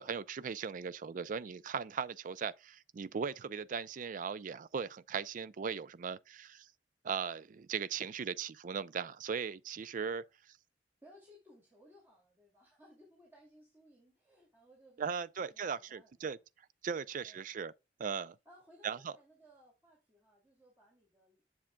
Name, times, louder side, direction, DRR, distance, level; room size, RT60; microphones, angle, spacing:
voice 1, 0.0-6.7 7.0-10.2 15.0-16.4 16.8-17.7 18.0-18.4 18.8-19.1, right 6 dB, 45° right, 0.4 m, -38 dB
voice 2, 11.0-15.0 15.4-16.4 17.2-17.6 18.4-21.4, equal, 15° right, 2.5 m, -62 dB
7.5 x 7.0 x 2.2 m
head